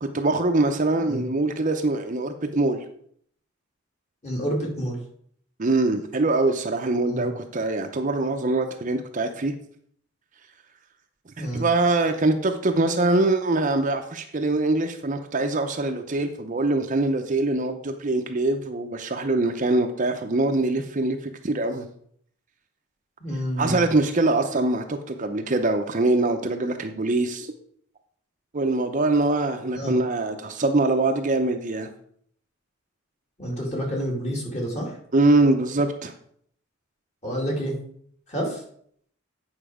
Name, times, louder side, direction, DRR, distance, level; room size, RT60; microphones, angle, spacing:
voice 1, 0.0-2.8 5.6-9.5 11.4-21.9 23.6-27.5 28.5-31.9 35.1-36.1, right 2 dB, 35° right, 5 dB, 0.7 m, -23 dB
voice 2, 4.2-5.0 7.1-7.3 11.4-11.6 23.2-23.8 29.7-30.0 33.4-35.0 37.2-37.8 38.3-38.6, equal, 30° left, -2 dB, 2.7 m, -28 dB
9.2 x 5.6 x 4.9 m, 0.63 s
head